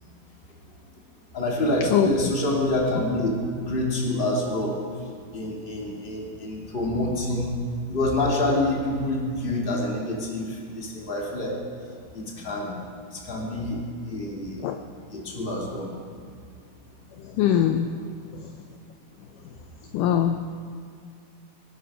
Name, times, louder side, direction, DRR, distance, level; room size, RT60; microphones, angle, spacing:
voice 1, 1.3-5.0 5.3-7.6 7.9-11.6 12.1-12.8 13.1-13.8 14.1-14.7 15.1-15.9 18.0-18.1, left 1 dB, 15° left, -2 dB, 2.1 m, -27 dB
voice 2, 17.4-17.9 19.9-20.4, left 10 dB, 80° left, 6 dB, 2.0 m, -21 dB
21.5 x 12.0 x 4.9 m, 2.3 s
omnidirectional pair, 4.2 m